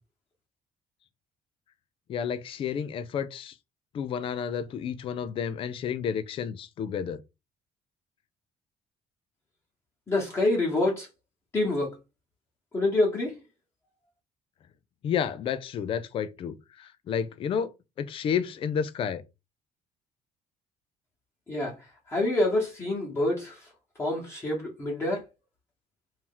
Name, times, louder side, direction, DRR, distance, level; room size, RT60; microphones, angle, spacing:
voice 1, 2.1-3.5 3.9-7.2 15.0-17.7 18.0-19.2, left 7 dB, 40° left, 0.4 m, -31 dB
voice 2, 10.1-11.1 11.5-11.9 12.7-13.4 21.5-23.7 24.0-25.2, left 2 dB, 20° left, 1.2 m, -27 dB
3.0 x 2.7 x 3.7 m
cardioid pair, 165°, 14 cm